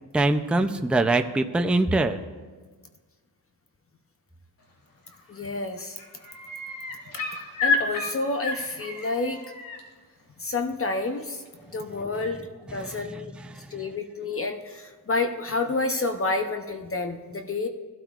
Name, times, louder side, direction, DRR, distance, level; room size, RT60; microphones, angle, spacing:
voice 1, 0.1-2.2 12.8-12.9, right 2 dB, 5° right, 6 dB, 0.4 m, -23 dB
sound 1, 5.1-5.4 5.7-9.8 11.4-11.5, left 3 dB, 60° left, 2.1 m, -30 dB
voice 2, 5.3-6.0 7.2-9.4 10.4-11.4 11.7-12.4 12.7-13.3 13.7-17.7, left 3 dB, 35° left, 5 dB, 0.7 m, -29 dB
21.0 x 12.5 x 2.4 m, 1.4 s
wide cardioid pair, 140°, 39 cm